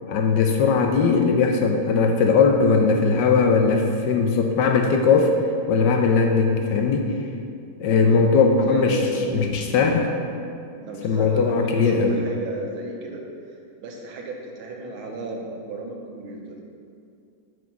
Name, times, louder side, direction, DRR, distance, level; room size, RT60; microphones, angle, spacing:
voice 1, 0.1-5.3 5.7-7.1 7.8-9.0 9.3-10.2 11.0-12.2, left 5 dB, 70° left, 3 dB, 1.2 m, -19 dB
voice 2, 8.7-9.6 10.8-13.2 13.8-16.6, right 2 dB, 85° right, 1 dB, 1.9 m, -33 dB
7.5 x 5.2 x 5.8 m, 2.4 s
omnidirectional pair, 2.2 m